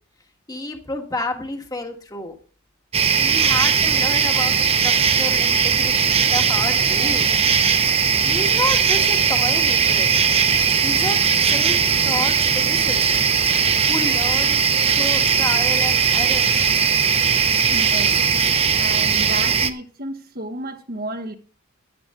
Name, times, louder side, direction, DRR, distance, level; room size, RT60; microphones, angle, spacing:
voice 1, 0.5-2.4 3.2-7.3 8.2-10.1 10.8-11.2 11.5-11.8 12.0-13.1 13.9-14.6 14.9-16.5, left 2 dB, 20° left, 1.7 m, -30 dB
sound 1, 2.9-19.7, right 6 dB, 30° right, 0.7 m, -18 dB
Water tap faucet, 10.4-18.5, right 7 dB, 90° right, 3.9 m, -38 dB
voice 2, 17.7-18.1 18.8-21.3, right 1 dB, 45° right, 1.4 m, -31 dB
14.0 x 11.0 x 3.8 m
head